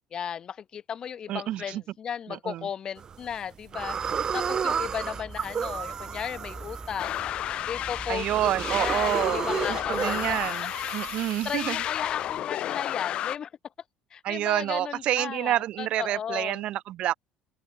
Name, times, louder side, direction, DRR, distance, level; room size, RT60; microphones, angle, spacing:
voice 1, 0.1-4.0 4.3-7.3 7.7-10.4 10.8-11.0 11.4-13.5 14.1-16.6, left 8 dB, 40° left, 0.6 m, -35 dB
voice 2, 1.3-1.8 2.3-2.7 8.1-11.8 14.2-17.1, right 13 dB, 60° right, 0.9 m, -28 dB
sound 1, 3.0-3.4 3.7-12.3, right 7 dB, 35° right, 2.7 m, -33 dB
sound 2, 3.7-10.5, right 2 dB, 15° right, 1.0 m, -44 dB
sound 3, 7.0-13.4, left 12 dB, 55° left, 1.5 m, -32 dB
open air
cardioid pair, 120°, 2 cm